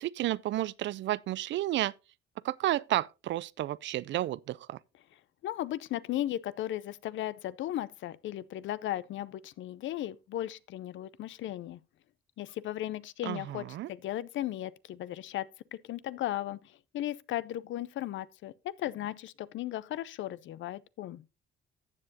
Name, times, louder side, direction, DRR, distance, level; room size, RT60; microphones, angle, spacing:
voice 1, 0.0-1.9 2.4-4.8 13.2-13.9, right 14 dB, 70° right, 0.4 m, -32 dB
voice 2, 5.4-11.8 12.4-21.2, left 13 dB, 75° left, 0.6 m, -36 dB
14.0 x 7.7 x 2.8 m
cardioid pair, 90°, 20 cm